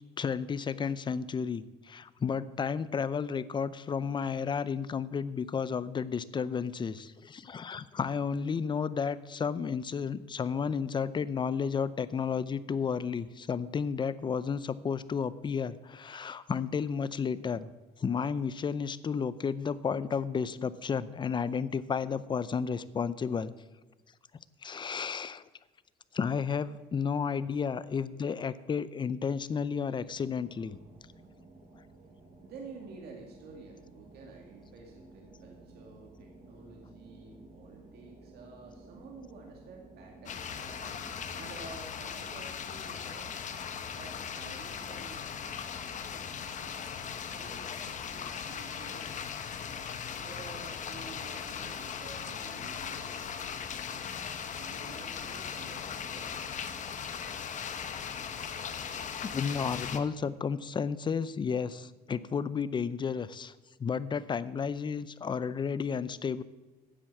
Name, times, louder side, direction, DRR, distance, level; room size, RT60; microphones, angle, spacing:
voice 1, 0.2-17.7 18.0-23.5 24.6-25.4 26.1-30.8 59.3-63.5 63.8-66.4, left 6 dB, 25° left, 17 dB, 0.5 m, -32 dB
voice 2, 28.1-28.6 30.5-30.6 32.4-40.9 41.3-43.3 43.9-46.7 47.3-49.0 50.2-53.6 54.6-56.5, right 4 dB, 70° right, 0 dB, 2.1 m, -51 dB
sound 1, 30.0-41.7, right 2 dB, 40° right, 3.1 m, -54 dB
sound 2, 40.3-60.0, left 7 dB, 45° left, 1.0 m, -39 dB
10.0 x 7.7 x 7.2 m, 1.1 s
cardioid pair, 110°, 17 cm